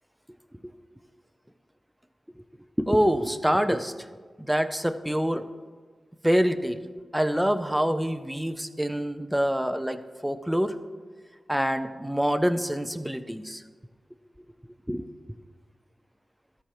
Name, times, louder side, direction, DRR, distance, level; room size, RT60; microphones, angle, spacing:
voice 1, 2.8-3.9 4.4-5.5 6.2-6.8 7.1-10.8 11.5-13.6 14.9-15.0, equal, 5° right, 10 dB, 0.5 m, -26 dB
13.5 x 4.5 x 6.6 m, 1.5 s
wide cardioid pair, 85°, 0 cm